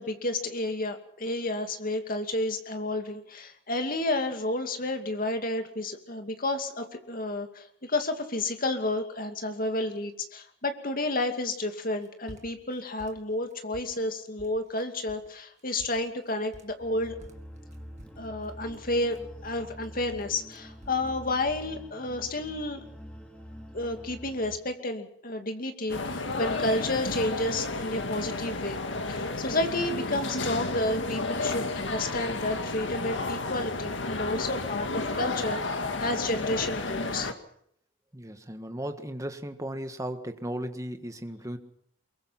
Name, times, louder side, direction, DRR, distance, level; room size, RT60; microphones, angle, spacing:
voice 1, 0.0-17.2 18.2-22.8 23.7-28.8 29.1-37.3, left 2 dB, 45° left, 6 dB, 2.5 m, -31 dB
sound 1, 11.9-12.7 13.0-14.0 14.4-14.8 15.1-15.3 15.6-16.9 17.2-19.8 20.1-21.1 21.4-21.7, equal, 35° right, 2.3 m, -51 dB
sound 2, 16.8-24.6, equal, 5° left, 3.6 m, -46 dB
sound 3, 25.9-37.3, left 3 dB, 70° left, 2.0 m, -32 dB
voice 2, 38.1-41.6, right 1 dB, 15° right, 8 dB, 1.6 m, -36 dB
23.5 x 22.5 x 5.9 m, 0.66 s
head